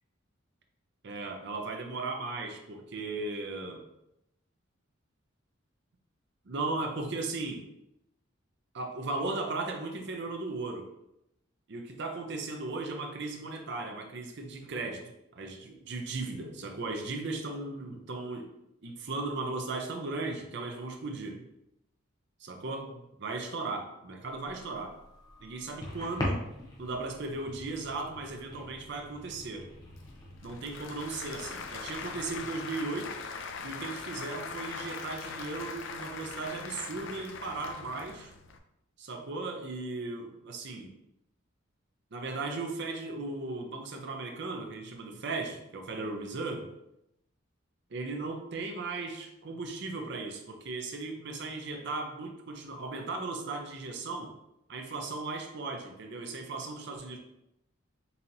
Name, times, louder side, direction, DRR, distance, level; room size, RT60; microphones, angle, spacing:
voice 1, 1.0-3.8 6.5-7.6 8.7-10.9 11.7-18.5 18.8-21.5 22.4-25.0 25.4-26.5 26.8-29.7 30.4-33.2 33.6-38.3 39.0-40.9 42.1-46.7 47.9-54.3 54.7-57.2, right 3 dB, 55° right, 3 dB, 0.6 m, -37 dB
sound 1, 24.3-32.5, left 1 dB, 20° left, 0.7 m, -42 dB
Applause / Crowd, 29.8-38.6, left 5 dB, 60° left, 0.4 m, -41 dB
5.4 x 2.9 x 2.6 m, 0.84 s
head